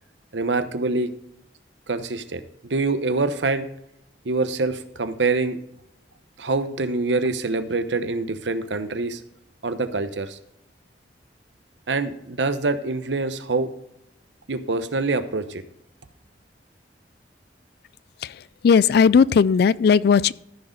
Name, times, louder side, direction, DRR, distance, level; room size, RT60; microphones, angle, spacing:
voice 1, 0.3-1.1 1.9-3.7 4.2-5.6 6.4-9.2 9.6-10.4 11.9-13.7 14.5-15.6, right 3 dB, 85° right, 0.9 m, -25 dB
voice 2, 18.2-20.3, left 6 dB, 60° left, 0.3 m, -17 dB
14.0 x 6.4 x 3.9 m
head